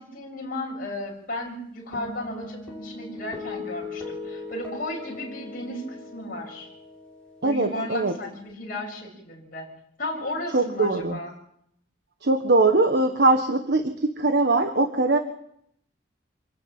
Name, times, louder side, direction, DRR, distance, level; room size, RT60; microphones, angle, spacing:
voice 1, 0.0-6.7 7.4-9.7 10.0-11.3, left 1 dB, 45° left, -2 dB, 7.2 m, -34 dB
sound 1, 1.9-8.5, left 3 dB, 5° left, 7.1 m, -39 dB
voice 2, 7.4-8.2 10.5-11.2 12.2-15.2, right 2 dB, 55° right, 7 dB, 1.5 m, -21 dB
26.5 x 13.5 x 9.0 m, 0.72 s
head